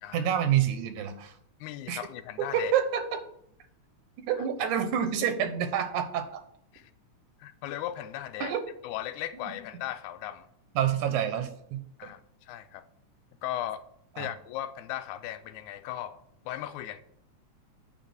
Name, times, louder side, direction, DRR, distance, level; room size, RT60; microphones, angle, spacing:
voice 1, 0.1-1.3 1.9-2.0 2.4-3.2 4.3-6.4 8.4-8.6 9.4-9.5 10.8-12.1 14.2-14.3, right 9 dB, 90° right, 2.4 m, -28 dB
voice 2, 1.6-2.7 4.6-4.7 6.7-6.9 7.4-8.6 8.8-10.5 12.0-12.8 13.4-13.8 14.2-16.2 16.5-17.0, left 12 dB, 85° left, 2.0 m, -37 dB
9.7 x 3.6 x 7.1 m
omnidirectional pair, 3.4 m